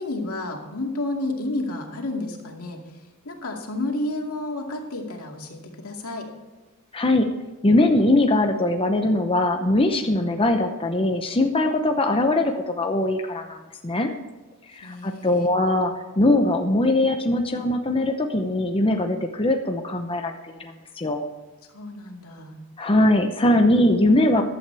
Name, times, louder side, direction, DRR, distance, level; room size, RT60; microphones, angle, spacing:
voice 1, 0.0-2.8 3.2-6.3 14.8-15.5 21.7-22.6, left 2 dB, 80° left, 1 dB, 2.4 m, -31 dB
voice 2, 6.9-7.3 7.6-14.1 14.7-21.2 22.8-24.4, left 1 dB, 25° left, 4 dB, 0.8 m, -21 dB
15.0 x 11.5 x 3.4 m, 1.2 s
head